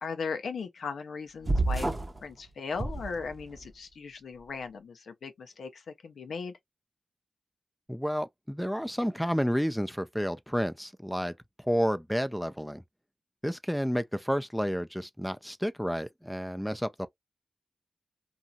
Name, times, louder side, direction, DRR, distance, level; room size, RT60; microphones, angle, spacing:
voice 1, 0.0-1.9 2.2-6.5, left 5 dB, 90° left, 0.5 m, -37 dB
sound 1, 1.5-2.2 2.7-3.7, right 2 dB, 30° right, 0.7 m, -29 dB
voice 2, 7.9-12.8 13.4-17.1, equal, ahead, 0.4 m, -30 dB
2.9 x 2.6 x 2.3 m
cardioid pair, 65°, 0 cm